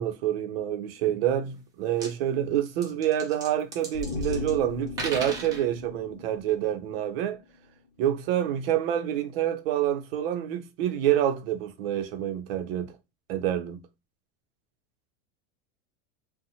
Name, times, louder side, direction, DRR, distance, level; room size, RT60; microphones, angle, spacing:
voice 1, 0.0-7.4 8.0-12.9 13.3-13.8, right 11 dB, 65° right, 0.6 m, -27 dB
sound 1, 1.6-1.7 1.9-2.1 2.7-4.6 4.9-5.6, right 3 dB, 10° right, 0.4 m, -36 dB
sound 2, 3.9-7.3 7.6-7.7, left 4 dB, 50° left, 0.6 m, -37 dB
2.8 x 2.1 x 2.7 m
supercardioid pair, 165°, 32 cm